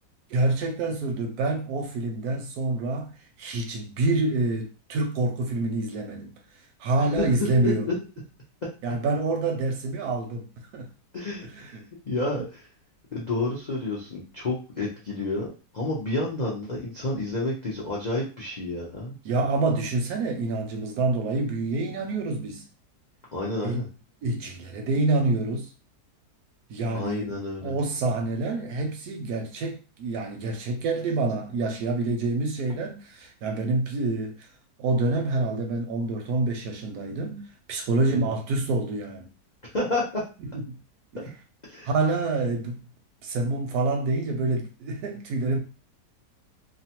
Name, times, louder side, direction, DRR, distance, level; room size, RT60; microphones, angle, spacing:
voice 1, 0.3-3.1 3.4-6.3 6.8-8.0 8.8-10.5 10.7-10.9 11.4-11.8 19.2-22.6 23.6-23.8 24.2-25.7 26.7-27.3 27.6-34.4 34.8-37.4 37.7-39.3 40.5-40.6 41.1-41.2 41.9-42.8 43.2-45.6, right 2 dB, 70° right, 1.0 m, -27 dB
voice 2, 7.6-7.9 11.1-11.8 12.1-12.7 13.1-19.2 23.3-23.9 26.9-27.8 38.2-38.3 39.7-40.2 41.6-41.9, left 2 dB, 85° left, 0.4 m, -30 dB
2.9 x 2.1 x 2.8 m
omnidirectional pair, 1.8 m